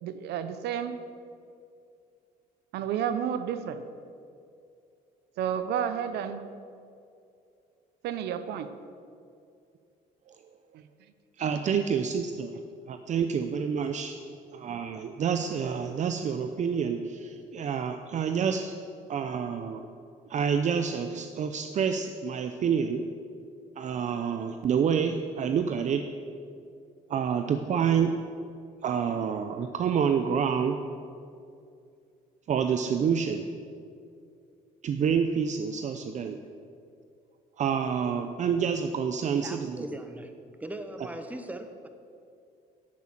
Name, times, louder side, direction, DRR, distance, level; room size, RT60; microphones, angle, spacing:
voice 1, 0.0-1.0 2.7-3.8 5.4-6.4 8.0-8.7 10.7-10.8, right 8 dB, 75° right, 10 dB, 0.8 m, -31 dB
voice 2, 11.4-12.5 12.9-14.2 14.5-18.7 19.1-19.9 20.3-23.0 23.8-26.0 27.1-28.1 28.8-30.8 32.5-33.4 34.8-36.4 37.6-39.7, right 7 dB, 45° right, 7 dB, 0.7 m, -28 dB
voice 3, 39.4-40.3 40.6-41.9, right 1 dB, 10° right, 7 dB, 1.1 m, -39 dB
11.0 x 8.4 x 7.5 m, 2.4 s
cardioid pair, 110°, 17 cm